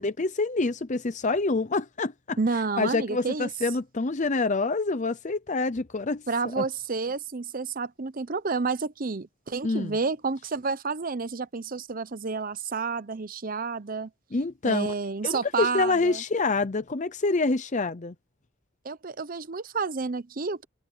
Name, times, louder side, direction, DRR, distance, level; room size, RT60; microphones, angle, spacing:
voice 1, 0.0-2.4 2.8-6.2 6.6-6.7 9.6-10.0 14.3-14.9 15.2-18.1, left 3 dB, 35° left, 0.6 m, -26 dB
voice 2, 2.4-3.5 6.3-14.1 14.6-16.2 18.8-20.6, right 4 dB, 40° right, 0.8 m, -30 dB
head